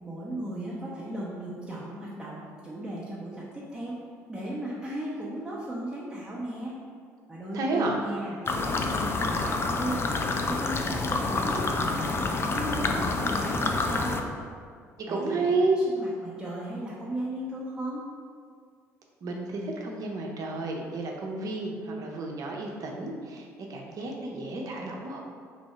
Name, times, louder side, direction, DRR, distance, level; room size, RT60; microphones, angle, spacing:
voice 1, 0.0-4.0 4.3-6.7 7.3-14.2 15.1-15.5 15.9-18.0, right 1 dB, 10° right, -7 dB, 0.8 m, -36 dB
voice 2, 7.5-8.0 15.1-15.8 19.2-25.2, right 3 dB, 50° right, 0 dB, 0.7 m, -31 dB
sound 1, 8.5-14.2, left 3 dB, 30° left, 0.4 m, -28 dB
3.3 x 2.7 x 4.2 m, 2.1 s
hypercardioid pair, 55°, 8 cm